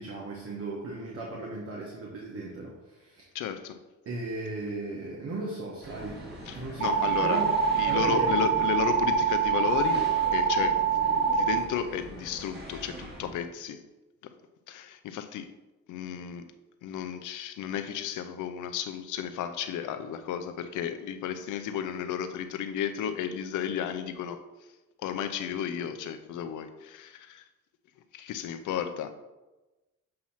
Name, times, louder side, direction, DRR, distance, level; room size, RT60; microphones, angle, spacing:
voice 1, 0.0-3.2 4.0-6.2 6.5-7.6 7.9-8.5, right 2 dB, 50° right, -2 dB, 1.3 m, -36 dB
voice 2, 3.3-3.8 6.5-7.4 7.7-13.8 14.7-15.5 15.9-16.4 16.8-24.4 25.0-27.4 28.1-29.1, left 8 dB, 80° left, 9 dB, 0.7 m, -33 dB
sound 1, 5.8-13.3, right 1 dB, 35° right, 2.1 m, -42 dB
sound 2, 6.8-11.6, right 6 dB, 85° right, 1.6 m, -25 dB
7.6 x 2.9 x 5.6 m, 1.1 s
cardioid pair, 90°, 30 cm